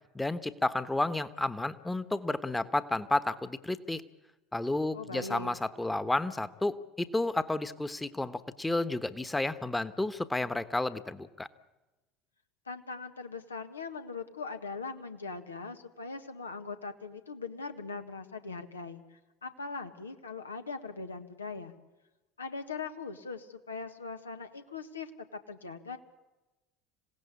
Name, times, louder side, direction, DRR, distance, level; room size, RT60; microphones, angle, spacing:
voice 1, 0.1-4.0 4.5-11.5, left 2 dB, 10° left, 13 dB, 1.3 m, -31 dB
voice 2, 4.9-5.5 12.6-21.7 22.4-26.0, left 4 dB, 85° left, 7 dB, 1.5 m, -41 dB
26.5 x 17.5 x 8.4 m, 1.1 s
figure-of-eight pair, 70°, 0 cm